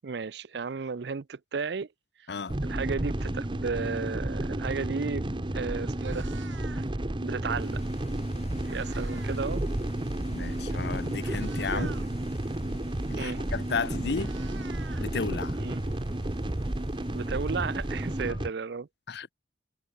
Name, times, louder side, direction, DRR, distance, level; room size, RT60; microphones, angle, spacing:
voice 1, 0.0-1.9 2.6-6.3 7.2-7.8 8.7-9.6 11.7-12.0 13.2-13.4 15.6-15.8 17.1-18.9, right 5 dB, 60° right, 0.5 m, -34 dB
sound 1, 2.5-18.5, right 1 dB, 25° right, 0.9 m, -32 dB
Meow, 5.3-5.5 5.8-7.1 8.2-9.5 9.8-10.0 10.7-10.8 11.2-12.1 13.4-13.5 13.8-15.7, right 6 dB, 80° right, 3.4 m, -49 dB
sound 2, 7.6-18.2, left 3 dB, 35° left, 4.9 m, -53 dB
voice 2, 10.3-11.9 13.1-14.3 15.0-15.6 18.3-18.4 19.1-19.3, left 4 dB, 60° left, 0.6 m, -33 dB
head